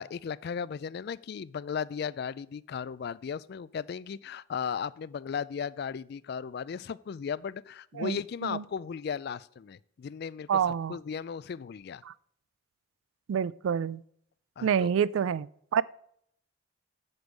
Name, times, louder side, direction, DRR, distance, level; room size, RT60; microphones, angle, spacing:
voice 1, 0.0-12.0 14.6-14.9, left 6 dB, 50° left, 0.3 m, -36 dB
voice 2, 8.0-8.6 10.5-11.0 12.1-12.2 13.3-14.0 14.6-15.5 15.7-15.8, right 7 dB, 85° right, 0.3 m, -27 dB
8.0 x 7.0 x 5.1 m
head